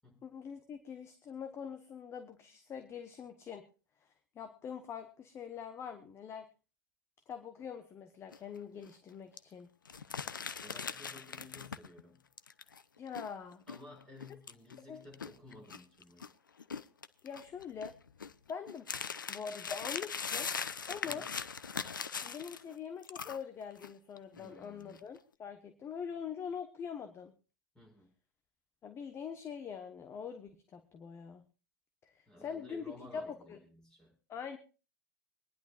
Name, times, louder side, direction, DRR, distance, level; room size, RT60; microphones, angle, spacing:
voice 1, 0.2-3.6 4.0-4.1 4.3-6.5 7.3-9.7 13.0-13.6 14.9-15.0 17.2-17.9 18.5-18.9 19.3-20.5 20.9-21.2 22.2-27.3 28.8-31.4 32.0-33.6 34.3-34.6, left 7 dB, 25° left, 8 dB, 1.1 m, -43 dB
sound 1, 8.3-8.6 8.8-8.9 9.4-9.5 9.8-12.0 12.4-16.3 16.6-22.7 23.0-23.9 24.2-24.5 24.9-25.2, left 6 dB, 80° left, 0.6 m, -41 dB
voice 2, 10.6-12.3 13.7-16.3 21.0-21.4 24.4-25.1 27.7-28.1 32.3-34.2, left 2 dB, 10° left, -1 dB, 6.2 m, -55 dB
24.5 x 10.5 x 2.4 m, 0.35 s
figure-of-eight pair, 95°, 11 cm